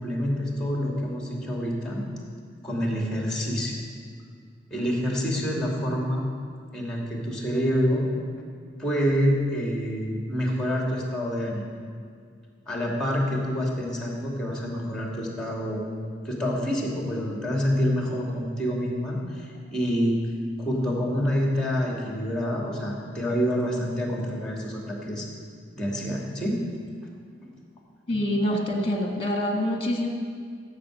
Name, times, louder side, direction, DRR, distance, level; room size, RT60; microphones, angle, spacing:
voice 1, 0.0-2.0 2.6-3.8 4.7-6.3 6.7-8.1 8.8-11.7 12.7-15.9 16.2-20.2 20.6-25.3 25.8-26.6 27.4-27.5 28.1-28.2, equal, 5° left, -2 dB, 2.5 m, -27 dB
voice 2, 28.1-30.1, left 1 dB, 30° left, 1 dB, 1.9 m, -26 dB
15.0 x 8.2 x 6.5 m, 2.1 s
head